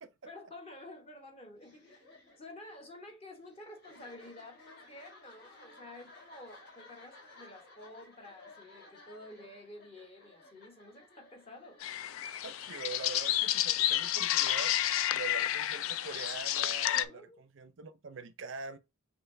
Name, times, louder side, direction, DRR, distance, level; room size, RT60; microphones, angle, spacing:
voice 1, 0.2-2.0 2.4-11.8 16.9-17.4, left 1 dB, 25° left, 1.0 m, -50 dB
sound 1, 1.6-13.3, left 2 dB, 50° left, 1.5 m, -57 dB
sound 2, 11.8-17.1, left 12 dB, 65° left, 0.3 m, -30 dB
voice 2, 12.4-14.7 15.1-18.8, right 4 dB, 55° right, 0.5 m, -43 dB
6.5 x 2.8 x 2.6 m
head